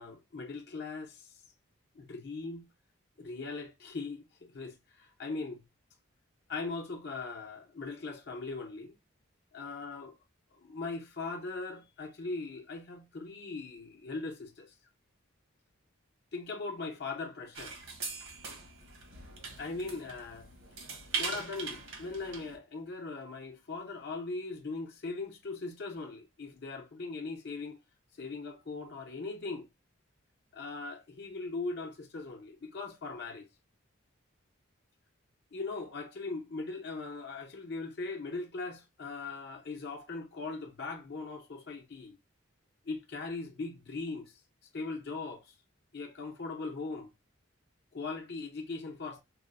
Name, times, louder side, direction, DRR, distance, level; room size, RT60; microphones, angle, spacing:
voice 1, 0.0-1.4 2.0-2.6 3.2-4.2 4.5-5.6 6.5-8.9 9.5-10.1 10.6-14.7 16.3-17.8 19.6-20.5 21.1-27.8 28.2-29.7 30.5-33.5 35.5-42.2 42.9-44.3 44.7-45.5 45.9-47.1 47.9-49.2, left 3 dB, 50° left, 0.6 m, -39 dB
sound 1, 17.5-22.6, right 5 dB, 70° right, 1.1 m, -41 dB
4.7 x 2.0 x 2.4 m
head